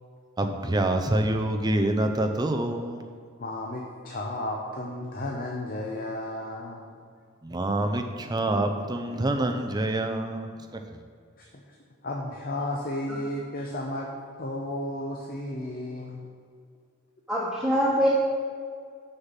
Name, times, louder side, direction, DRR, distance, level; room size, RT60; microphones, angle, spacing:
voice 1, 0.4-3.1 7.4-11.0, right 1 dB, 20° right, 5 dB, 0.5 m, -27 dB
voice 2, 3.4-7.0 11.4-11.5 12.0-14.1 14.4-16.3, left 1 dB, 45° left, 0 dB, 0.7 m, -33 dB
voice 3, 17.3-18.1, equal, 5° right, -6 dB, 0.9 m, -24 dB
6.6 x 5.7 x 7.4 m, 2.1 s
head